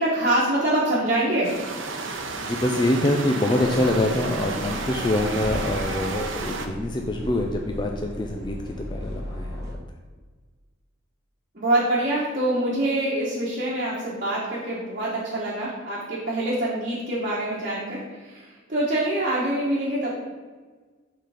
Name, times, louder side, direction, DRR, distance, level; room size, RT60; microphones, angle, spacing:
voice 1, 0.0-1.5 11.5-20.1, right 1 dB, 45° right, -7 dB, 1.3 m, -25 dB
sound 1, 1.4-6.7, right 3 dB, 70° right, 0.7 m, -32 dB
voice 2, 2.0-9.6, left 1 dB, 25° left, 1 dB, 0.4 m, -25 dB
sound 2, 3.5-9.8, equal, 15° right, 1.6 m, -34 dB
6.8 x 3.9 x 5.0 m, 1.4 s
head